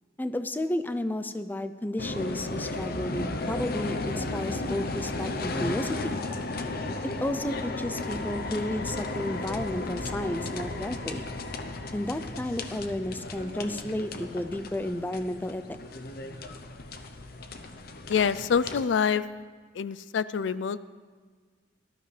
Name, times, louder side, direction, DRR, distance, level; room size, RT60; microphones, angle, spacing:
voice 1, 0.2-6.2 7.2-11.3 11.9-15.6, left 1 dB, 10° left, 10 dB, 0.4 m, -32 dB
sound 1, 2.0-18.8, left 2 dB, 55° left, 0.8 m, -34 dB
voice 2, 18.1-19.2 19.7-20.8, left 6 dB, 75° left, 16 dB, 0.4 m, -26 dB
18.5 x 12.5 x 3.3 m, 1.5 s
head